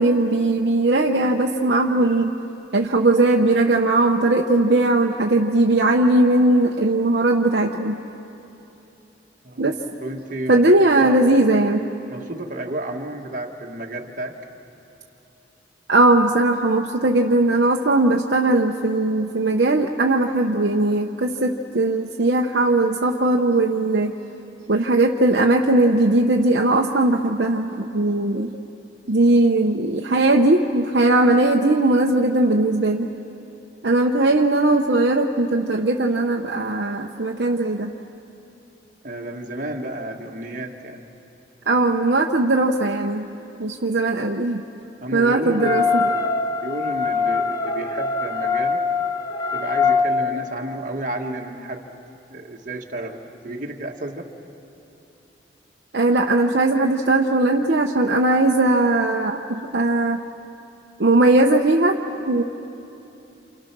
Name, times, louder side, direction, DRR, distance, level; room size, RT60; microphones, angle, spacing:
voice 1, 0.0-2.3 2.7-8.0 9.6-9.8 10.5-11.9 15.9-24.1 24.7-28.5 29.1-33.1 33.8-37.9 41.7-43.3 43.6-44.6 45.1-46.0 55.9-60.2 61.0-62.0 62.3-62.4, right 2 dB, 65° right, 1 dB, 0.9 m, -19 dB
voice 2, 9.4-10.6 11.0-11.2 11.5-11.6 12.1-14.4 39.0-41.0 45.0-48.8 49.5-51.9 52.3-54.3, right 1 dB, 45° right, 0 dB, 1.8 m, -32 dB
sound 1, 45.6-50.1, left 5 dB, 20° left, 0.8 m, -22 dB
29.0 x 28.5 x 6.1 m, 2.9 s
head